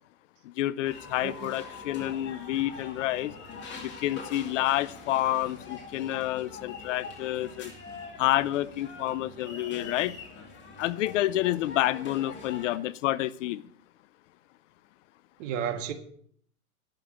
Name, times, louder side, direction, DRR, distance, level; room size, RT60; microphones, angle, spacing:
voice 1, 0.4-3.3 3.8-7.7 8.2-10.2 10.8-13.6, left 14 dB, 55° left, 0.6 m, -29 dB
sound 1, 0.8-12.8, left 4 dB, 25° left, 2.6 m, -44 dB
voice 2, 15.4-15.9, right 8 dB, 55° right, 1.8 m, -33 dB
11.0 x 6.6 x 8.2 m
hypercardioid pair, 135°, 45 cm